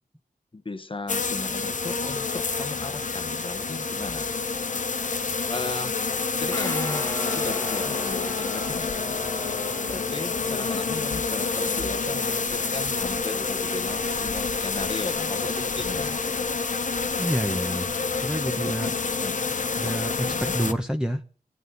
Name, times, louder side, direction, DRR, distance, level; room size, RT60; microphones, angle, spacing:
voice 1, 0.5-4.3 5.5-6.0 6.4-8.9 9.9-16.2 19.2-19.4 20.3-20.5, left 3 dB, 35° left, 1.1 m, -36 dB
sound 1, 1.1-20.7, left 4 dB, 50° left, 0.8 m, -28 dB
Guitar, 6.5-16.3, equal, 20° left, 1.7 m, -40 dB
voice 2, 17.2-17.9 18.2-18.9 19.8-21.2, equal, 5° right, 1.1 m, -28 dB
25.0 x 9.2 x 4.1 m
cardioid pair, 55°, 16 cm